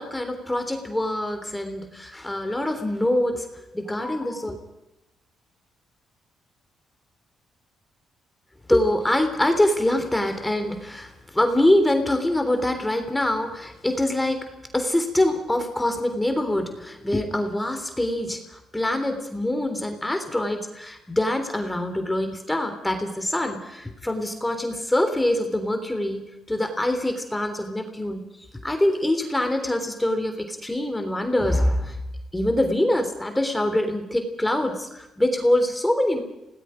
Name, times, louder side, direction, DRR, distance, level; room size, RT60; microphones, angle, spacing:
voice 1, 0.0-3.5 3.7-4.6 8.7-14.4 14.7-26.2 26.5-28.3 28.6-32.0 32.3-36.2, left 1 dB, 10° left, 6 dB, 3.4 m, -24 dB
27.5 x 19.0 x 5.1 m, 0.89 s
cardioid pair, 90°, 0 cm